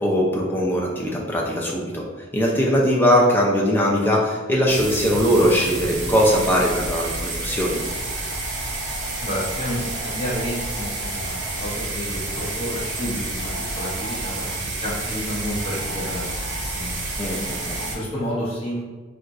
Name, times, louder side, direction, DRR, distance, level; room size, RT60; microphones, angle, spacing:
voice 1, 0.0-2.0 2.3-7.8 17.2-17.8, equal, 10° left, -3 dB, 0.4 m, -20 dB
sound 1, 4.7-18.0, right 2 dB, 55° right, 0.7 m, -29 dB
voice 2, 9.2-13.5 13.7-17.0 17.8-18.9, equal, 30° left, -6 dB, 0.8 m, -30 dB
2.4 x 2.3 x 4.0 m, 1.4 s
head